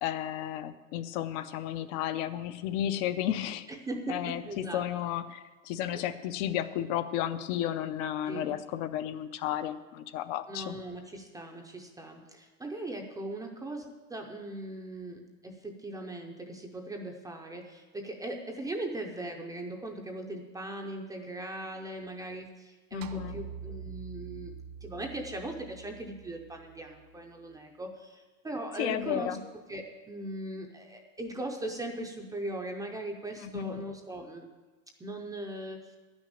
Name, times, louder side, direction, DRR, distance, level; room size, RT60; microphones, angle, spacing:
voice 1, 0.0-3.7 4.1-10.8 22.9-23.4 28.8-29.4 33.4-33.8, left 11 dB, 55° left, 11 dB, 0.7 m, -33 dB
voice 2, 3.7-4.8 5.9-6.1 8.3-8.6 10.5-24.5 24.8-29.3 29.7-34.5 35.0-36.0, right 1 dB, 10° right, 2 dB, 0.5 m, -39 dB
sound 1, 23.0-27.4, right 7 dB, 45° right, 0.7 m, -45 dB
11.0 x 6.3 x 8.8 m, 1.2 s
supercardioid pair, 160°, 42 cm